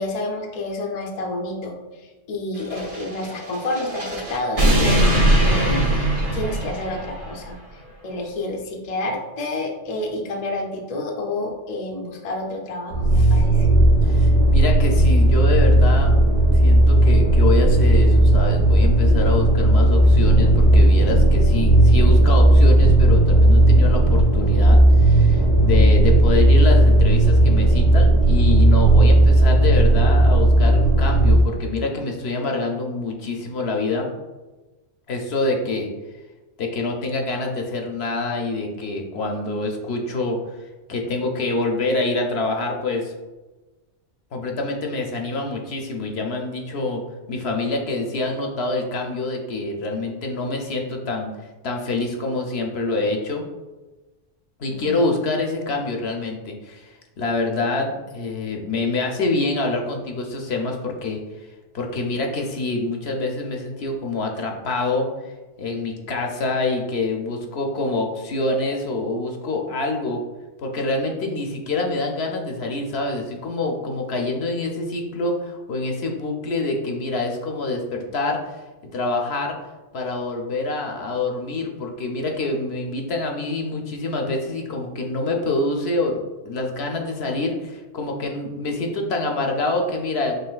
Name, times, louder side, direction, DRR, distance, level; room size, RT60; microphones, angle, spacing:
voice 1, 0.0-5.9 6.3-7.6 8.0-13.7 54.7-55.1, left 2 dB, 45° left, 1 dB, 0.6 m, -29 dB
Laser Cannon, 2.6-7.4, right 1 dB, 35° right, 0.9 m, -21 dB
sound 1, 12.9-31.4, right 1 dB, 75° right, 1.3 m, -15 dB
voice 2, 14.0-16.1 16.5-34.1 35.1-35.9 36.6-40.4 40.9-43.1 44.3-47.0 47.3-51.3 51.6-53.4 54.6-61.5 61.7-70.2 70.6-78.6 78.9-79.6 79.9-86.2 86.5-90.4, left 2 dB, 70° left, 1 dB, 0.9 m, -26 dB
sound 2, 20.2-29.7, equal, 5° right, 0.9 m, -32 dB
5.5 x 3.4 x 2.3 m, 1.2 s
omnidirectional pair, 1.2 m